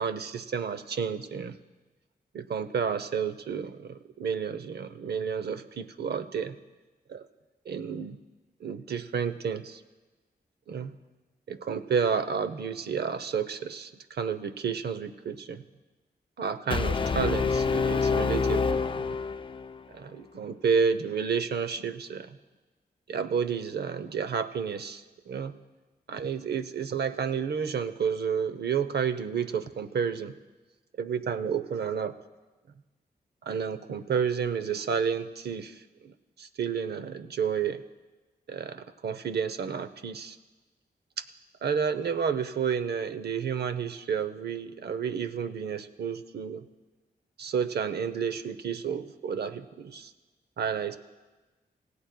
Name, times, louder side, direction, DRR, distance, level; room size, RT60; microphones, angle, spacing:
voice 1, 0.0-1.5 2.3-6.6 7.1-7.3 7.7-8.2 8.6-9.8 10.7-11.0 11.5-15.6 16.4-19.2 19.9-22.4 23.1-25.5 26.1-30.3 31.0-32.2 33.4-37.8 38.5-40.4 41.6-46.6 47.4-50.1 50.6-51.0, right 6 dB, 80° right, 12 dB, 0.7 m, -31 dB
Brass instrument, 16.7-19.8, left 4 dB, 30° left, 0.4 m, -27 dB
27.5 x 16.5 x 2.2 m, 1.2 s
wide cardioid pair, 95°, 17 cm